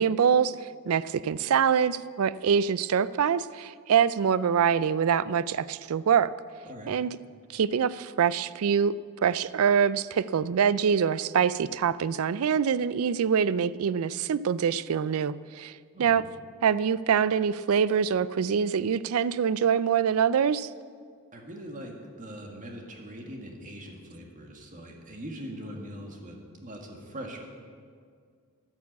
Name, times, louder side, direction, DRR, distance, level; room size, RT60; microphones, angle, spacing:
voice 1, 0.0-6.3 6.9-7.1 7.5-9.0 9.2-16.2 16.6-20.7, right 7 dB, 70° right, 17 dB, 0.4 m, -25 dB
voice 2, 21.3-27.4, equal, 35° right, 1 dB, 1.9 m, -41 dB
11.0 x 9.4 x 8.1 m, 2.1 s
head